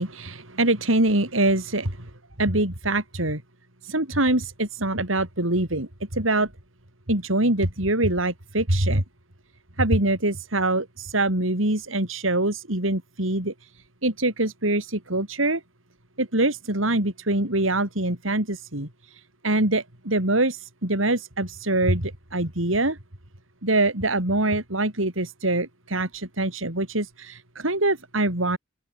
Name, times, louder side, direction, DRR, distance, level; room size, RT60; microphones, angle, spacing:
voice 1, 0.0-2.0 2.4-3.4 3.8-6.5 7.1-9.0 9.8-13.5 14.0-15.6 16.2-18.9 19.4-23.0 23.6-28.6, right 2 dB, 85° right, 5.3 m, -24 dB
open air
head